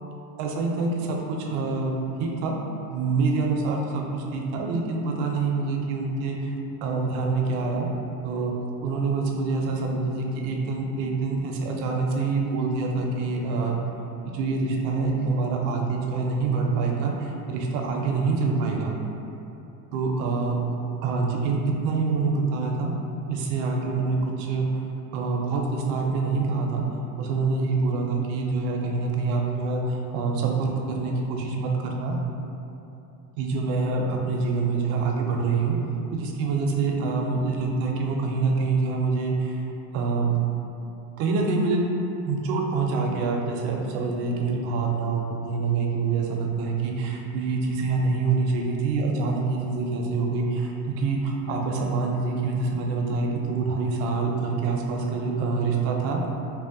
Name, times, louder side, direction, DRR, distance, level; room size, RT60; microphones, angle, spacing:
voice 1, 0.4-1.9 2.2-2.5 2.9-6.5 6.8-7.9 8.2-8.5 8.8-13.8 14.3-18.9 19.9-20.8 21.0-22.9 23.3-24.8 25.1-26.8 27.2-32.2 33.4-35.8 36.1-39.6 39.9-40.3 41.2-41.8 42.3-56.2, right 4 dB, 60° right, 1 dB, 0.5 m, -26 dB
2.7 x 2.1 x 2.5 m, 2.8 s
supercardioid pair, 125°, 45 cm